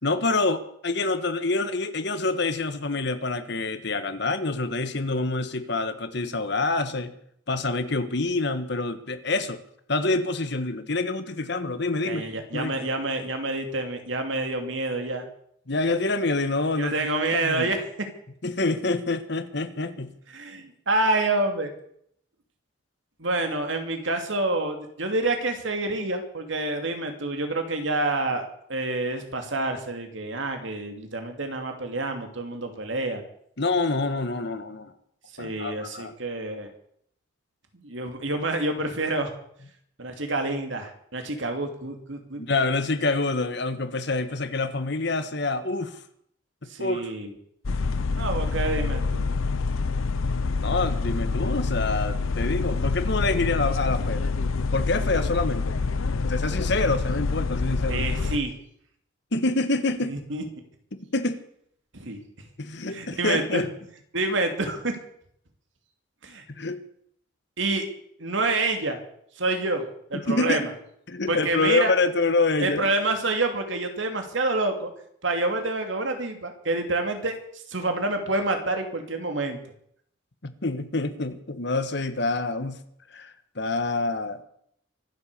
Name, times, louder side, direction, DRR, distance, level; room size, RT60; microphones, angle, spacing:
voice 1, 0.0-7.1 7.5-9.6 9.9-12.3 12.5-12.7 15.7-17.1 17.3-17.7 18.4-20.2 33.6-34.9 35.4-36.1 42.4-46.0 46.6-47.1 50.6-54.3 54.7-55.7 56.3-58.0 59.3-60.1 61.1-61.4 62.6-63.7 66.5-66.8 70.1-70.7 71.1-72.9 80.4-82.8 83.1-84.4, left 3 dB, 55° left, 10 dB, 1.4 m, -26 dB
voice 2, 12.0-15.2 16.8-17.9 20.3-21.7 23.2-33.2 35.4-36.7 37.8-39.3 40.0-42.4 46.7-47.3 48.2-49.2 57.9-58.5 60.1-60.4 61.9-62.2 62.9-63.6 64.1-65.0 66.2-66.4 67.6-67.8 68.2-69.0 69.4-70.7 71.3-71.9 72.6-74.9 75.2-77.4 77.7-79.6, right 2 dB, 65° right, 5 dB, 2.7 m, -27 dB
sound 1, 47.6-58.4, left 4 dB, 85° left, 0.8 m, -26 dB
24.5 x 8.2 x 6.8 m, 0.69 s
head